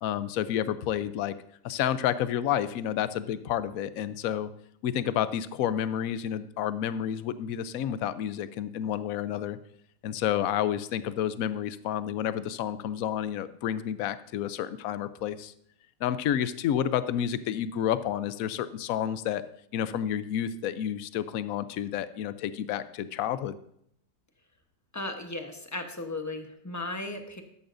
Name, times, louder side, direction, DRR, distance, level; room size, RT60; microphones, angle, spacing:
voice 1, 0.0-1.3 1.6-4.5 4.8-9.6 10.0-15.5 16.0-19.4 19.7-23.6, left 10 dB, 65° left, 13 dB, 0.9 m, -30 dB
voice 2, 24.9-27.4, left 2 dB, 15° left, 5 dB, 0.7 m, -36 dB
13.5 x 11.5 x 2.6 m, 0.72 s
omnidirectional pair, 2.0 m